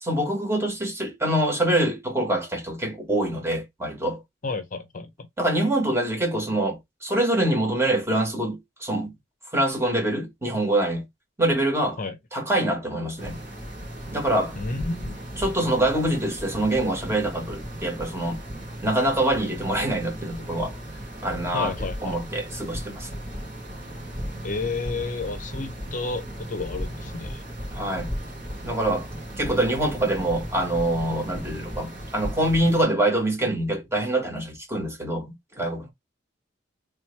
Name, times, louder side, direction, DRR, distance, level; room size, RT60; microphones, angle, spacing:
voice 1, 0.0-4.2 5.4-9.2 9.5-11.1 11.4-12.0 12.3-13.4 14.1-14.6 15.4-18.4 18.8-20.7 21.2-23.1 27.7-28.1 28.6-29.1 29.4-35.9, right 1 dB, 15° right, 1.4 m, -25 dB
voice 2, 4.4-5.1 12.0-12.2 14.6-15.2 21.5-22.2 24.4-27.4, left 3 dB, 45° left, 0.6 m, -31 dB
sound 1, 13.2-32.8, equal, 45° right, 2.1 m, -36 dB
3.5 x 3.1 x 3.1 m
head